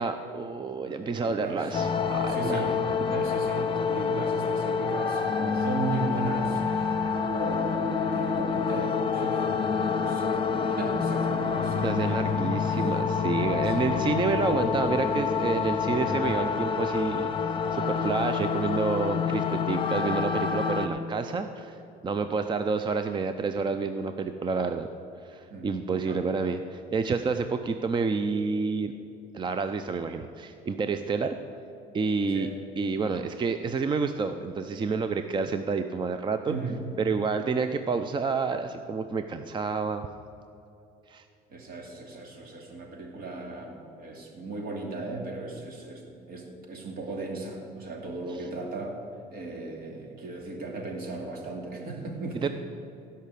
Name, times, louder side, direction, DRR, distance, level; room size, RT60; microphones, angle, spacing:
voice 1, 0.0-2.7 11.8-21.8 22.0-24.9 25.2-28.9 29.3-31.4 31.9-32.5 32.8-36.5 37.0-40.1 41.1-41.2 48.3-48.5 52.4-52.5, right 4 dB, 30° right, 8 dB, 0.5 m, -29 dB
voice 2, 0.8-2.0 2.3-6.9 7.3-12.8 13.6-13.9 25.5-25.7 26.1-26.3 32.3-32.5 33.0-33.3 36.5-36.8 41.5-49.0 49.3-52.5, right 3 dB, 60° right, 1 dB, 2.6 m, -36 dB
sound 1, 1.7-20.9, left 6 dB, 30° left, 0.9 m, -27 dB
16.0 x 5.7 x 8.4 m, 2.7 s
cardioid pair, 110°, 17 cm